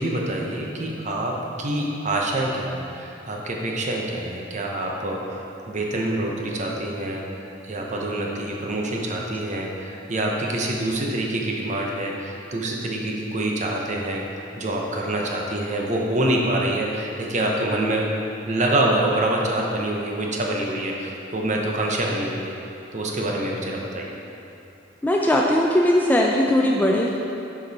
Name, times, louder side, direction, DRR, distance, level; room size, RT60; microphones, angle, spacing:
voice 1, 0.0-7.2 7.6-18.1 18.5-22.5 22.9-24.2, right 1 dB, 40° right, -1 dB, 0.8 m, -26 dB
voice 2, 25.0-27.2, left 1 dB, 10° left, -2 dB, 0.3 m, -19 dB
6.6 x 5.2 x 4.1 m, 2.8 s
head